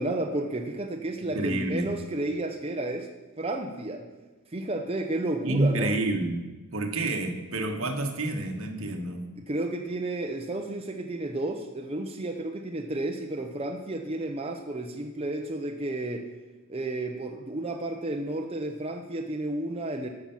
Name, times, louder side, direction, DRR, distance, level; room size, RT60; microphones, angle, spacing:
voice 1, 0.0-3.1 3.4-4.0 4.5-5.9 9.5-16.2 16.7-20.1, right 2 dB, 25° right, 2 dB, 0.8 m, -32 dB
voice 2, 1.3-1.9 5.4-9.3, right 2 dB, 70° right, 3 dB, 1.5 m, -28 dB
13.5 x 5.8 x 7.2 m, 1.2 s
head